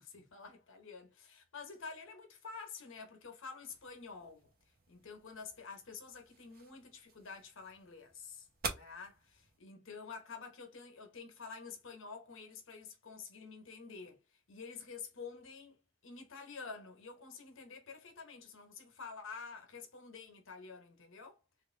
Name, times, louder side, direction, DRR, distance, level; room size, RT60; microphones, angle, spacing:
voice 1, 0.0-4.5 4.9-21.4, left 5 dB, 65° left, 0.9 m, -49 dB
sound 1, 3.7-9.6, right 4 dB, 50° right, 0.8 m, -48 dB
3.2 x 2.5 x 3.2 m
head